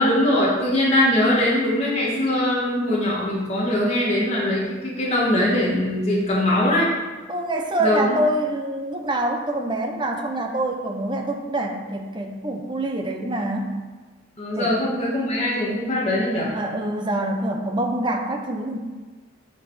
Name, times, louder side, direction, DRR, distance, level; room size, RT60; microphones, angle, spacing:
voice 1, 0.0-6.9 7.8-8.2 14.4-16.5, left 1 dB, 35° left, -6 dB, 2.0 m, -21 dB
voice 2, 7.3-13.7 14.6-14.7 16.5-18.8, right 1 dB, 25° right, 2 dB, 0.9 m, -25 dB
9.3 x 5.1 x 5.8 m, 1.3 s
head